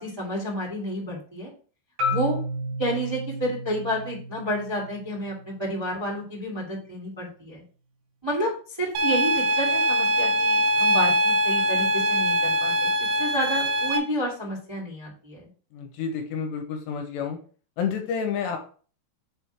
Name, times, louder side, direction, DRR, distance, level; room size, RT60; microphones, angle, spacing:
voice 1, 0.0-1.5 2.1-2.4 2.8-7.6 8.2-12.9 13.2-15.4, equal, 10° right, -5 dB, 1.6 m, -30 dB
Marimba xylophone, 2.0-6.2, left 1 dB, 60° right, 3.9 m, -32 dB
sound 1, 9.0-14.0, equal, 75° right, 2.4 m, -22 dB
voice 2, 15.7-17.4 17.8-18.6, left 6 dB, 80° left, 4 dB, 3.1 m, -29 dB
7.0 x 3.7 x 4.5 m, 0.40 s
omnidirectional pair, 5.0 m